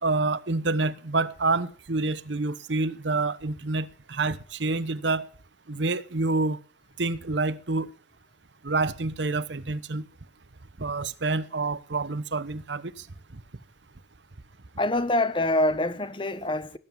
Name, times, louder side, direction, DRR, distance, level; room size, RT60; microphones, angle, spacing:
voice 1, 0.0-5.2 5.7-6.6 7.0-7.9 8.6-10.1 10.8-12.9, right 3 dB, 85° right, 1.0 m, -27 dB
voice 2, 14.8-16.8, left 1 dB, 30° left, 1.0 m, -25 dB
18.5 x 9.7 x 7.3 m
head